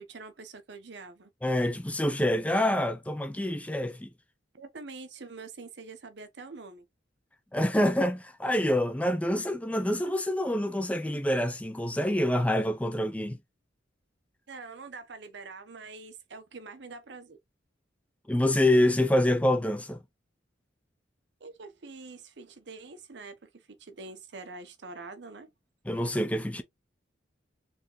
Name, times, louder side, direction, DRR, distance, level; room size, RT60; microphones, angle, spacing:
voice 1, 0.0-1.3 4.5-6.8 14.5-17.4 21.4-25.5, right 3 dB, 70° right, 0.8 m, -45 dB
voice 2, 1.4-4.1 7.5-13.4 18.3-20.0 25.9-26.6, left 1 dB, 10° left, 0.4 m, -26 dB
4.3 x 3.3 x 3.0 m
head